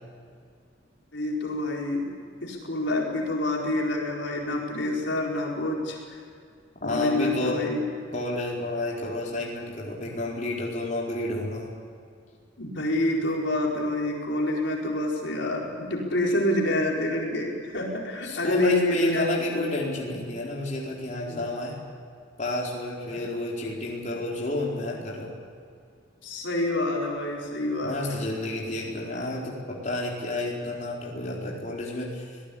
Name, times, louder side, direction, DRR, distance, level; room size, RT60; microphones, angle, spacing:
voice 1, 1.1-6.2 6.8-7.8 12.6-19.2 19.5-19.6 26.2-28.2, left 1 dB, 70° left, -1 dB, 4.5 m, -27 dB
voice 2, 6.8-7.6 8.1-11.7 18.2-21.8 22.4-25.3 27.8-32.2, left 2 dB, 40° left, -3 dB, 4.4 m, -30 dB
25.0 x 18.5 x 8.6 m, 2.2 s
head